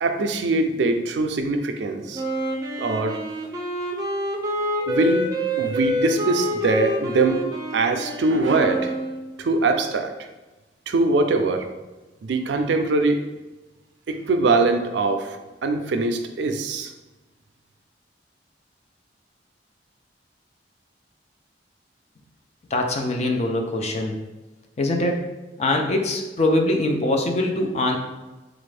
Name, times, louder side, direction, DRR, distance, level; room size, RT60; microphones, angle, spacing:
voice 1, 0.0-2.2 2.8-3.2 4.9-5.3 5.6-7.4 7.7-8.9 9.4-10.1 10.9-11.7 12.2-13.2 14.1-15.4 15.6-16.9, right 3 dB, 80° right, 7 dB, 0.4 m, -22 dB
Wind instrument woodwind instrument, 2.1-9.3, equal, 20° right, 0.5 m, -27 dB
voice 2, 22.7-24.2 24.8-25.2 25.6-28.0, left 1 dB, 40° left, 2 dB, 0.5 m, -23 dB
3.9 x 2.5 x 3.3 m, 1.1 s
head